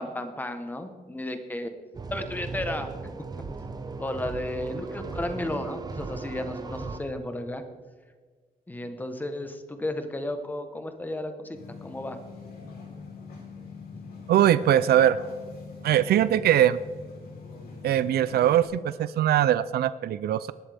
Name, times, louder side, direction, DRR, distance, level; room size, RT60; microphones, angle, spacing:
voice 1, 0.0-1.7 2.1-3.2 4.0-7.6 8.7-12.2 13.9-14.1, left 1 dB, 10° left, 7 dB, 1.1 m, -33 dB
sound 1, 1.9-7.0, right 4 dB, 25° right, 0.7 m, -37 dB
sound 2, 11.5-18.7, left 4 dB, 75° left, 3.9 m, -43 dB
voice 2, 14.3-15.2 15.8-16.8 17.8-20.5, right 11 dB, 80° right, 15 dB, 0.5 m, -21 dB
19.5 x 11.5 x 3.5 m, 1.5 s
wide cardioid pair, 170°, 16 cm